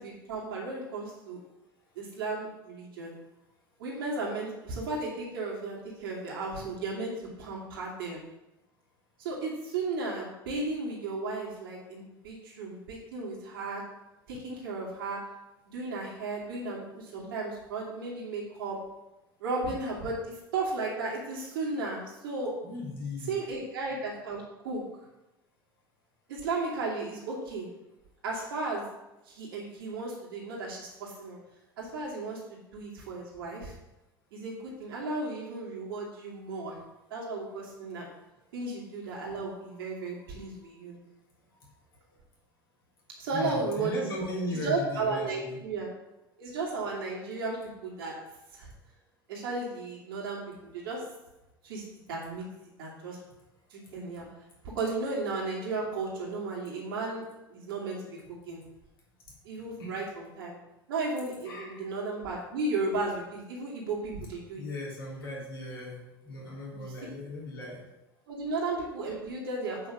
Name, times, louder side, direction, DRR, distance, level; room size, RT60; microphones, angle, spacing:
voice 1, 0.0-1.4 2.0-3.1 3.8-8.2 9.2-13.8 14.3-15.2 15.7-18.8 19.4-22.5 23.3-24.8 26.3-27.7 28.2-28.8 29.2-31.4 31.8-33.7 34.3-36.8 37.1-38.1 38.5-41.0 43.2-45.9 46.4-48.1 48.5-48.7 49.3-51.0 51.6-51.8 52.1-52.4 52.8-53.2 53.7-54.3 54.8-57.2 57.5-58.6 59.4-60.0 60.4-60.6 60.9-64.6 66.7-66.8 68.3-69.9, right 3 dB, 70° right, -4 dB, 2.6 m, -34 dB
voice 2, 22.6-23.3 41.6-41.7 42.1-42.2 43.3-45.6 59.8-59.9 61.4-61.8 64.6-67.9, left 1 dB, 75° left, -5 dB, 3.5 m, -38 dB
8.2 x 5.6 x 6.1 m, 0.99 s
figure-of-eight pair, 70°, 12 cm